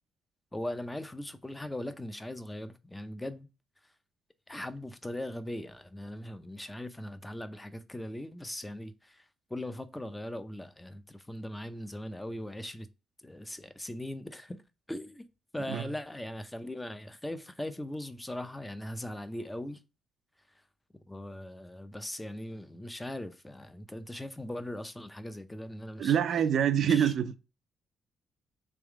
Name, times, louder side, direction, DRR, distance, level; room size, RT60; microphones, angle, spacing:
voice 1, 0.5-3.5 4.5-12.9 13.2-14.6 14.9-15.2 15.5-19.8 21.1-26.2 26.8-27.1, left 1 dB, 10° left, 0.6 m, -40 dB
voice 2, 26.0-27.4, right 9 dB, 65° right, 0.4 m, -26 dB
3.5 x 3.1 x 4.7 m
cardioid pair, 90°, 0 cm